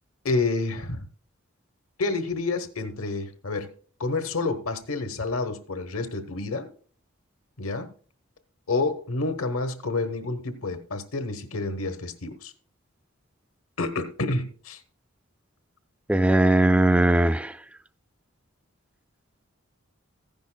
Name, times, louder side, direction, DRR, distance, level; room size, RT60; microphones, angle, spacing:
voice 1, 0.2-1.0 2.0-3.7 4.0-6.7 7.6-7.9 8.7-12.5 13.8-14.8, left 3 dB, 85° left, 1.1 m, -29 dB
voice 2, 16.1-17.5, right 1 dB, 5° right, 0.3 m, -19 dB
15.0 x 10.5 x 2.2 m
head